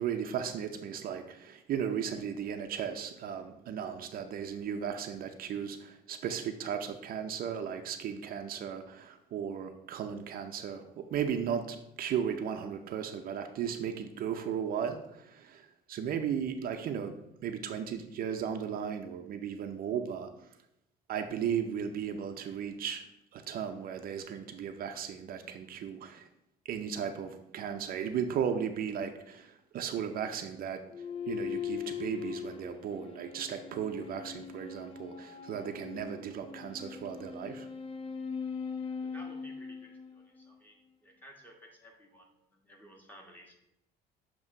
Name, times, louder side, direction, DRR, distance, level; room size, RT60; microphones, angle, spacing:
voice 1, 0.0-17.2 17.4-20.3 21.1-23.0 23.3-26.3 26.7-30.8 31.3-37.7, right 8 dB, 60° right, 6 dB, 0.6 m, -36 dB
sound 1, 30.9-40.5, left 6 dB, 35° left, 0.6 m, -40 dB
voice 2, 39.0-43.5, equal, 10° left, 1 dB, 1.4 m, -55 dB
7.3 x 3.0 x 5.4 m, 0.84 s
cardioid pair, 110°, 17 cm